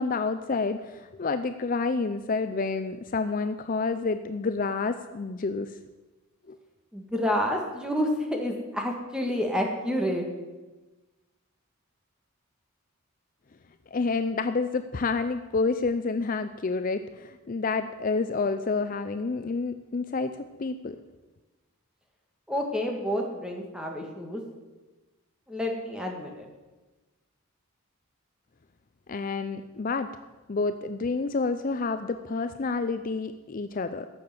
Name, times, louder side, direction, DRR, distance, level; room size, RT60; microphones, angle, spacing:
voice 1, 0.0-5.8 6.5-6.6 13.9-21.0 29.1-30.1 30.5-34.1, left 4 dB, 40° left, 10 dB, 0.4 m, -29 dB
voice 2, 6.9-10.3 22.5-24.4 25.5-26.5, equal, 5° right, 1 dB, 1.7 m, -29 dB
15.0 x 6.8 x 7.7 m, 1.2 s
head